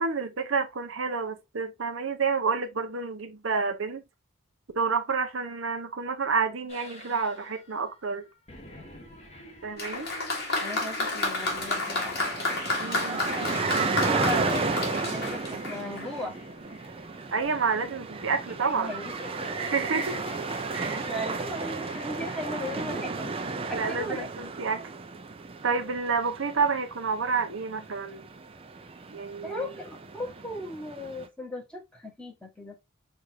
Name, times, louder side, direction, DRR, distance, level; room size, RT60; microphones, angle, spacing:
voice 1, 0.0-4.0 4.8-8.3 9.6-10.1 12.8-13.6 17.3-18.9 19.6-20.2 20.7-21.0 23.7-24.8 25.6-28.3 29.1-29.7, right 5 dB, 75° right, 0.8 m, -29 dB
sound 1, 6.7-22.8, left 1 dB, 35° left, 1.3 m, -47 dB
Applause, 9.8-16.2 17.1-17.2, left 2 dB, 50° left, 1.6 m, -31 dB
voice 2, 10.6-12.2 13.5-16.3 18.6-19.4 20.1-20.2 20.9-23.4 23.7-24.3 29.4-32.8, left 1 dB, 5° left, 1.2 m, -37 dB
sound 2, 11.4-31.3, right 4 dB, 30° right, 0.4 m, -34 dB
6.3 x 2.6 x 2.7 m
head